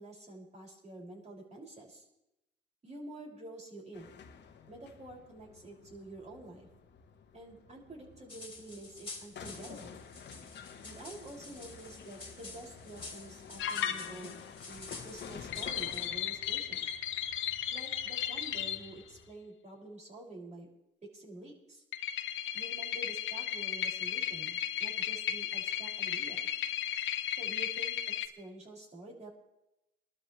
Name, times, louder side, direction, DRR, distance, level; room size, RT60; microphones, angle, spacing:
voice 1, 0.0-2.1 2.8-4.1 4.7-6.7 7.3-10.0 10.8-14.4 14.7-16.8 17.7-20.7 21.1-21.8 22.5-26.4 27.4-28.0 28.2-29.3, right 1 dB, 35° right, -2 dB, 6.5 m, -48 dB
sound 1, 3.9-19.3, left 6 dB, 60° left, 1.5 m, -51 dB
sound 2, 8.3-16.1, left 3 dB, 25° left, 2.9 m, -49 dB
sound 3, 13.6-14.4 15.5-18.9 21.9-28.3, left 10 dB, 80° left, 1.0 m, -35 dB
24.0 x 12.5 x 3.3 m, 0.90 s
cardioid pair, 90°, 20 cm